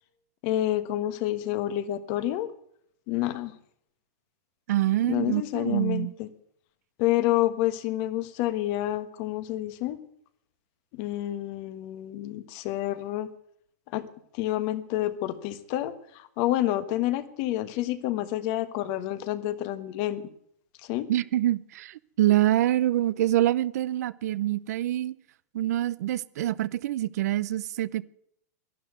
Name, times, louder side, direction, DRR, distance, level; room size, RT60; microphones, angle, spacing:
voice 1, 0.4-2.5 3.1-3.5 5.0-6.3 7.0-10.0 10.9-13.3 13.9-14.1 14.3-20.3 20.8-21.1, left 14 dB, 45° left, 1.3 m, -29 dB
voice 2, 4.7-6.1 21.1-25.2 25.5-28.1, right 14 dB, 70° right, 0.6 m, -25 dB
12.0 x 11.0 x 9.4 m
supercardioid pair, 140°, 9 cm